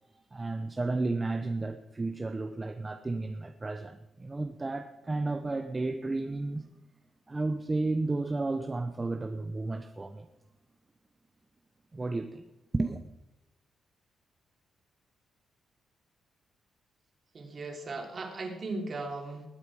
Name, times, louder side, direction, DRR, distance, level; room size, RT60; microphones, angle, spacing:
voice 1, 0.3-6.7 7.3-10.3 11.9-12.4 12.7-13.0, right 2 dB, 20° right, 0.8 m, -32 dB
voice 2, 17.3-19.5, right 3 dB, 40° right, 3.1 m, -37 dB
20.5 x 8.9 x 4.9 m
cardioid pair, 125°, 0 cm